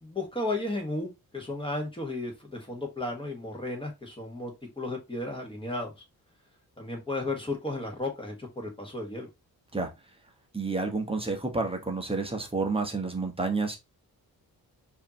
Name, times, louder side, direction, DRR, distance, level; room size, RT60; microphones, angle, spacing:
voice 1, 0.0-5.9 6.8-9.3, left 2 dB, 15° left, 1.5 m, -34 dB
voice 2, 10.5-13.8, right 3 dB, 15° right, 1.0 m, -29 dB
4.9 x 2.9 x 2.9 m
wide cardioid pair, 125°, 37 cm